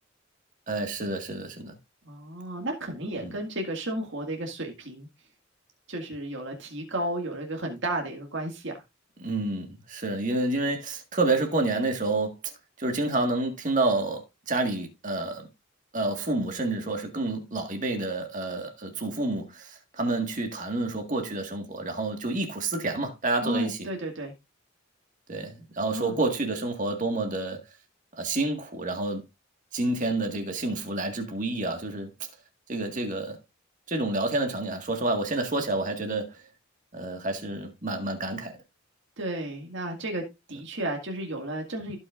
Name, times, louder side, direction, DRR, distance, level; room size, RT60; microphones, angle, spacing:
voice 1, 0.7-1.7 3.2-3.4 9.2-12.4 12.8-15.5 15.9-23.9 25.3-27.6 28.1-29.2 29.7-32.1 32.7-33.4 33.9-36.3 36.9-38.5, right 2 dB, 40° right, 1.8 m, -29 dB
voice 2, 2.1-5.1 5.9-8.7 23.4-24.3 25.9-26.2 39.2-40.2 40.5-42.0, right 1 dB, 65° right, 2.1 m, -33 dB
16.0 x 5.7 x 2.5 m
head